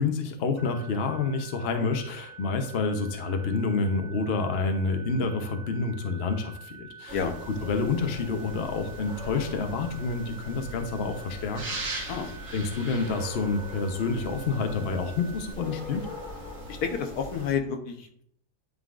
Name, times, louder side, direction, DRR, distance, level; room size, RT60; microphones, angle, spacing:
voice 1, 0.0-7.2 7.5-11.6 11.9-12.2 12.5-16.1, left 4 dB, 50° left, 6 dB, 0.8 m, -28 dB
sound 1, 0.6-15.5, right 4 dB, 75° right, 1.9 m, -47 dB
sound 2, 7.1-17.6, right 1 dB, 55° right, 1.5 m, -40 dB
voice 2, 16.7-18.2, left 6 dB, 75° left, 4 dB, 1.3 m, -30 dB
11.0 x 3.8 x 2.4 m, 0.65 s
omnidirectional pair, 1.7 m